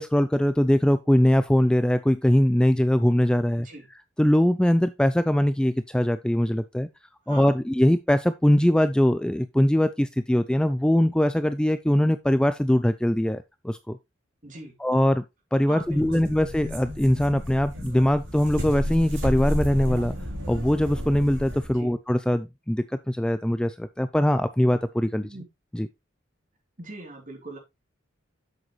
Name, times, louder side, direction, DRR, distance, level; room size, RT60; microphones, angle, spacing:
voice 1, 0.0-3.7 4.2-6.9 7.3-14.0 14.8-15.2 15.5-20.1 20.5-25.3 25.7-25.9, equal, 5° left, 0.4 m, -22 dB
voice 2, 7.3-7.6 14.4-14.7 15.7-16.3 21.7-21.9 25.2-25.4 26.8-27.6, right 2 dB, 40° right, 3.4 m, -41 dB
sound 1, 15.8-21.8, equal, 70° right, 3.6 m, -32 dB
8.0 x 7.6 x 3.1 m
head